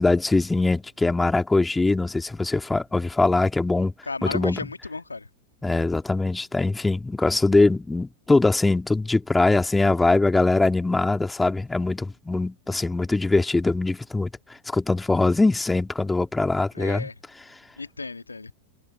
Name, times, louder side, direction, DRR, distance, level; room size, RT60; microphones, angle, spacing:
voice 1, 0.0-3.9 4.2-4.6 5.6-14.3 14.7-17.1, left 3 dB, 10° left, 2.5 m, -22 dB
voice 2, 4.1-5.3 16.7-17.1 17.8-18.5, left 3 dB, 80° left, 1.8 m, -34 dB
figure-of-eight pair, 90°, 0 cm